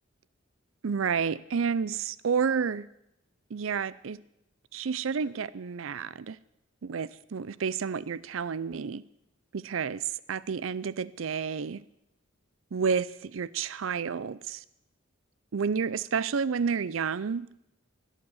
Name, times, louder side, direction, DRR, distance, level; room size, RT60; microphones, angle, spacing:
voice 1, 0.8-2.9 3.5-4.2 4.7-6.4 6.8-9.0 9.5-11.8 12.7-14.6 15.5-17.5, right 6 dB, 80° right, 19 dB, 0.5 m, -30 dB
21.0 x 8.3 x 7.1 m, 0.83 s
head